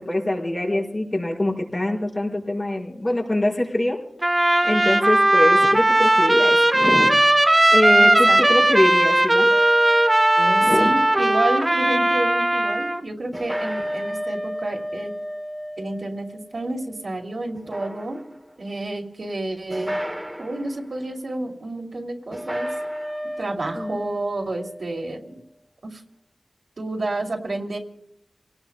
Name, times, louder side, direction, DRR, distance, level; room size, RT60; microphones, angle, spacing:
voice 1, 0.0-4.0 4.6-7.2 7.7-9.5 10.6-10.9 23.7-24.0, left 1 dB, 40° left, -4 dB, 4.9 m, -24 dB
Trumpet, 4.2-13.0, right 1 dB, 25° right, 1.1 m, -17 dB
voice 2, 7.9-8.4 10.3-15.1 15.8-18.3 18.6-19.9 20.4-22.7 23.4-25.4 25.8-26.0 26.8-27.8, right 2 dB, 70° right, 3 dB, 2.6 m, -30 dB
sound 1, 9.5-11.5 13.3-17.1 17.5-18.5 19.7-20.8 22.3-25.0, equal, 5° right, 1.0 m, -33 dB
30.0 x 18.5 x 2.2 m, 0.75 s
wide cardioid pair, 75°, 0 cm